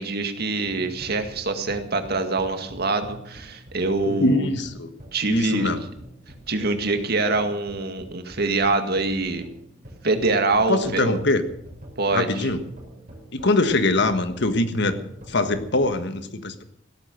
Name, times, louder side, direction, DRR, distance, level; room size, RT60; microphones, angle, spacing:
voice 1, 0.0-4.5 5.1-5.7 6.5-9.4 10.0-11.2 12.0-12.5, right 3 dB, 55° right, 7 dB, 2.0 m, -24 dB
sound 1, 0.7-16.0, right 1 dB, 40° right, 5.1 m, -46 dB
voice 2, 4.0-4.9 5.3-5.8 10.7-11.4 12.1-12.6 13.3-15.0 15.3-16.6, left 2 dB, 65° left, 9 dB, 1.5 m, -22 dB
16.5 x 13.5 x 6.5 m, 0.71 s
head